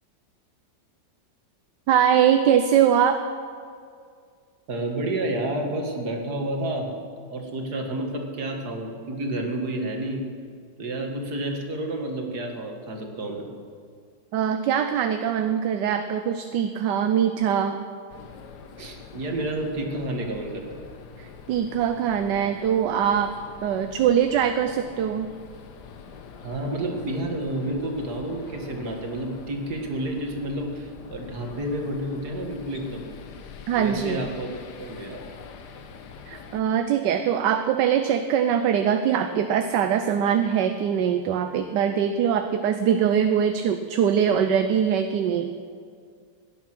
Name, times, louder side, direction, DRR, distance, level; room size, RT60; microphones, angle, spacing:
voice 1, 1.9-3.2 14.3-17.8 21.2-23.3 23.6-25.3 33.7-34.3 36.3-45.5, right 8 dB, 80° right, 8 dB, 1.3 m, -22 dB
voice 2, 4.7-6.9 7.3-10.2 10.8-13.5 18.8-20.8 26.4-33.1 33.8-34.5 34.7-35.2, right 1 dB, 65° right, 2 dB, 2.4 m, -30 dB
sound 1, 18.1-36.6, left 6 dB, 70° left, 1.6 m, -44 dB
17.0 x 11.0 x 6.1 m, 2.2 s
omnidirectional pair, 1.9 m